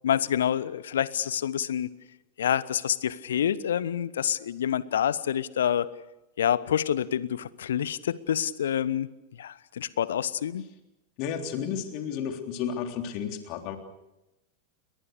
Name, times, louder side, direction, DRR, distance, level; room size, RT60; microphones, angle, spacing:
voice 1, 0.0-1.9 2.4-5.9 6.4-9.1 9.4-10.6, left 9 dB, 65° left, 19 dB, 1.0 m, -27 dB
voice 2, 11.2-13.8, left 8 dB, 45° left, 5 dB, 3.5 m, -32 dB
29.5 x 22.5 x 6.7 m, 0.93 s
figure-of-eight pair, 90°, 0 cm